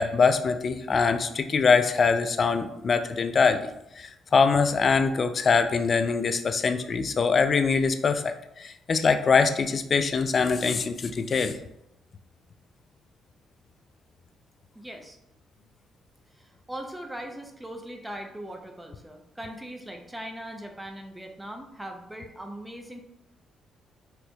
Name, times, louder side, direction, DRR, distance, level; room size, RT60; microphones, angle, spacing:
voice 1, 0.0-3.6 4.0-11.6, left 5 dB, 45° left, 9 dB, 0.3 m, -23 dB
voice 2, 14.8-15.2 16.4-23.0, right 1 dB, 10° right, 3 dB, 0.5 m, -40 dB
4.3 x 2.6 x 2.2 m, 0.82 s
cardioid pair, 90°, 0 cm